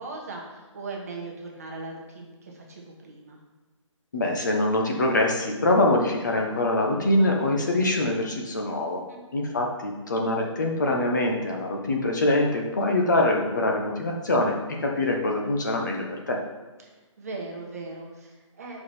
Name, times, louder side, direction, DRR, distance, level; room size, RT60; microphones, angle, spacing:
voice 1, 0.0-3.4 9.1-9.2 17.2-18.8, right 3 dB, 30° right, -1 dB, 1.1 m, -39 dB
voice 2, 4.1-9.0 9.3-14.5 14.8-16.4, left 1 dB, 35° left, 1 dB, 0.9 m, -24 dB
6.6 x 4.8 x 4.2 m, 1.3 s
hypercardioid pair, 180°, 17 cm